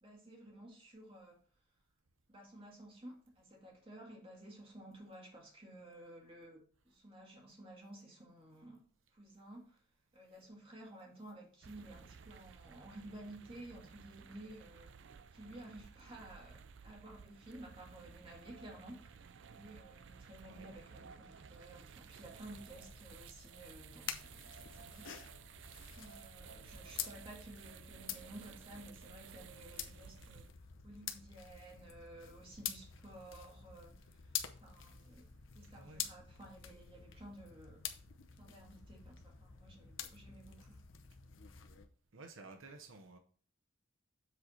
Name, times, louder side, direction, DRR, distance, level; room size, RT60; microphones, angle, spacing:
voice 1, 0.0-1.4 2.3-6.6 6.8-8.8 9.1-9.8 10.1-14.9 15.3-25.1 25.9-30.5 30.8-35.3 35.5-37.8 38.4-40.8, right 1 dB, 25° right, 2.1 m, -54 dB
sound 1, 11.6-30.5, right 6 dB, 65° right, 0.4 m, -55 dB
sound 2, 22.4-41.8, left 9 dB, 75° left, 0.8 m, -48 dB
voice 2, 35.6-36.1 42.1-43.2, right 3 dB, 85° right, 0.8 m, -54 dB
7.6 x 4.1 x 4.4 m
head